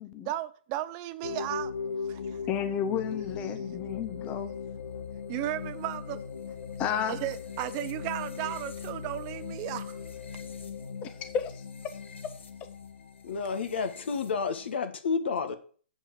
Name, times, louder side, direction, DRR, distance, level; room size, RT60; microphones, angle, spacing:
voice 1, 0.3-1.7 2.1-2.2 5.3-6.2 7.1-10.0, right 14 dB, 30° right, 0.6 m, -34 dB
sound 1, 1.2-14.8, left 6 dB, 85° left, 1.5 m, -39 dB
voice 2, 2.5-4.5 6.8-7.2 11.0-11.9, left 8 dB, 20° left, 0.6 m, -32 dB
voice 3, 13.2-15.6, left 5 dB, 65° left, 1.6 m, -30 dB
7.3 x 5.5 x 7.3 m
hypercardioid pair, 155°, 6 cm